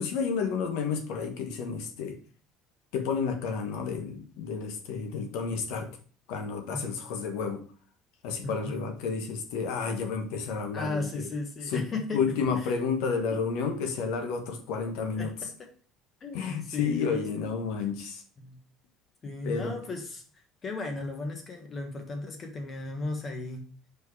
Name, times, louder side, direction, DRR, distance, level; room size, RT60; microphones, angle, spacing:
voice 1, 0.0-2.2 2.9-5.9 6.3-7.6 8.2-11.3 11.7-11.8 12.1-15.3 16.3-18.2 19.4-20.0, left 5 dB, 85° left, 5 dB, 1.3 m, -31 dB
voice 2, 8.4-8.8 10.7-12.2 13.3-13.4 15.1-15.7 16.2-17.2 18.4-18.6 19.2-20.2 20.6-23.6, left 2 dB, 25° left, 4 dB, 1.3 m, -35 dB
5.2 x 4.5 x 4.7 m, 0.41 s
cardioid pair, 165°, 0 cm